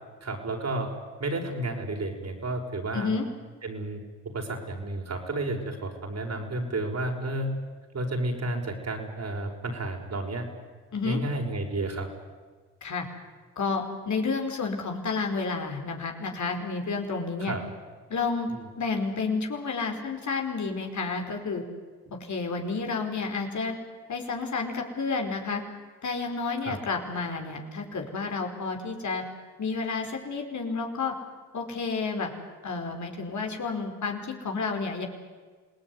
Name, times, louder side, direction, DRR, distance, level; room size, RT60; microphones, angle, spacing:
voice 1, 0.2-0.9 1.2-3.1 3.6-7.5 7.9-10.5 11.0-12.1 17.4-17.6 18.5-18.6 26.6-26.8, right 2 dB, 45° right, 2 dB, 5.8 m, -31 dB
voice 2, 2.9-3.3 10.9-11.2 12.8-13.1 13.6-17.5 18.1-18.5 18.8-21.6 22.2-23.7 24.1-25.6 26.0-29.2 29.6-31.1 31.5-32.3 32.6-35.0, left 4 dB, 55° left, 3 dB, 4.8 m, -30 dB
27.0 x 18.5 x 9.7 m, 1.4 s
supercardioid pair, 55°, 36 cm